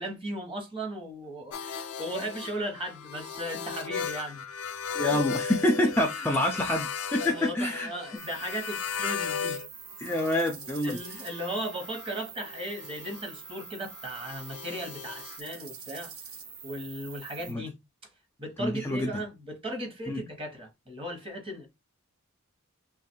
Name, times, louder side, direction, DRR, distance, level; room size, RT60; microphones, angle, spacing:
voice 1, 0.0-4.4 6.2-6.4 7.2-9.6 10.8-16.1 16.6-17.7 18.4-21.7, right 1 dB, 25° right, 1.0 m, -37 dB
sound 1, 1.5-9.7 9.9-15.4, left 6 dB, 80° left, 0.5 m, -37 dB
voice 2, 4.9-7.9 10.0-11.0 17.5-17.6 18.6-19.2 20.1-20.2, left 1 dB, 10° left, 0.4 m, -27 dB
sound 2, 8.2-17.5, right 6 dB, 75° right, 0.9 m, -45 dB
2.9 x 2.4 x 4.3 m
head